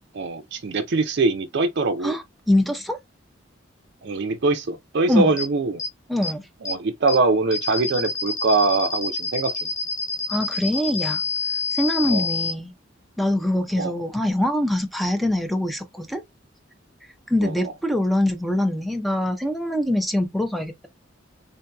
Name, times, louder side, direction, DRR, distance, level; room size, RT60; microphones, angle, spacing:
voice 1, 0.1-2.2 4.0-5.8 6.6-9.7 12.1-12.3 13.8-13.9 17.4-17.7, right 3 dB, 60° right, 0.5 m, -23 dB
voice 2, 2.0-3.0 5.1-5.3 6.1-6.4 10.3-11.2 11.7-12.7 13.2-16.2 17.3-20.9, left 1 dB, ahead, 0.5 m, -23 dB
sound 1, 5.4-5.5 5.8-5.9 6.2-6.3 6.7-6.8 7.1-7.2 7.5-12.5, left 5 dB, 15° left, 1.4 m, -27 dB
3.7 x 2.7 x 2.2 m
head